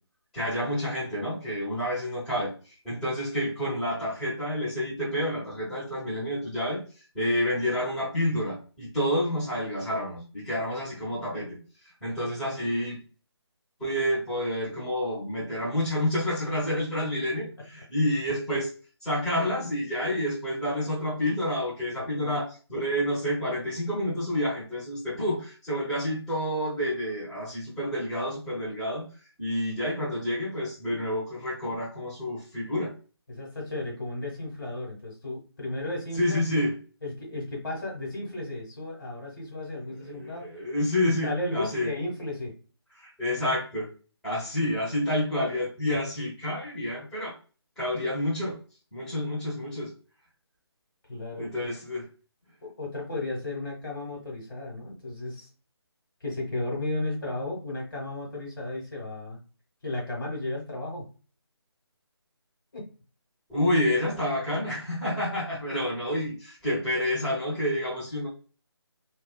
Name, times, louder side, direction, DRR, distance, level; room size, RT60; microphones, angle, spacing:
voice 1, 0.3-2.5 2.8-6.8 7.1-11.6 12.0-13.0 13.8-18.7 19.0-29.1 29.4-32.9 36.2-36.7 40.0-41.9 43.0-43.9 44.2-47.3 47.8-48.6 48.9-49.9 51.4-52.0 63.5-68.3, left 1 dB, 5° left, -13 dB, 1.3 m, -29 dB
voice 2, 21.9-22.4 33.3-36.4 37.0-40.5 41.1-42.5 51.1-51.7 52.6-55.5 56.2-59.4 59.8-61.1 62.7-62.9, left 2 dB, 50° left, -2 dB, 1.4 m, -34 dB
2.7 x 2.4 x 2.3 m, 0.36 s
figure-of-eight pair, 155°, 14 cm